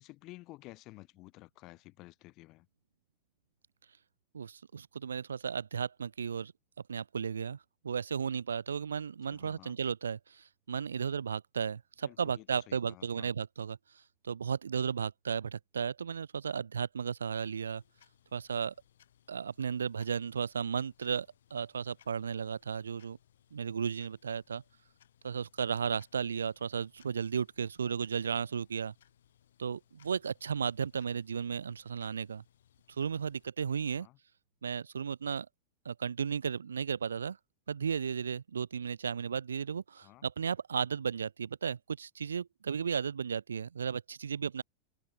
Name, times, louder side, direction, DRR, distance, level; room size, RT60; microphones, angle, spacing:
voice 1, 0.0-2.7 9.3-9.8 12.0-13.3 33.9-34.2 40.0-40.3, left 20 dB, 40° left, 2.3 m, -53 dB
voice 2, 4.3-6.5 6.9-7.6 7.8-10.2 10.7-13.8 14.2-17.8 18.3-18.7 19.3-23.2 23.5-24.6 25.2-28.9 29.6-32.4 33.0-34.1 34.6-35.5 35.9-37.4 37.7-44.6, right 6 dB, 70° right, 0.4 m, -34 dB
sound 1, 17.2-33.5, left 10 dB, 60° left, 3.4 m, -67 dB
open air
figure-of-eight pair, 90°, 0 cm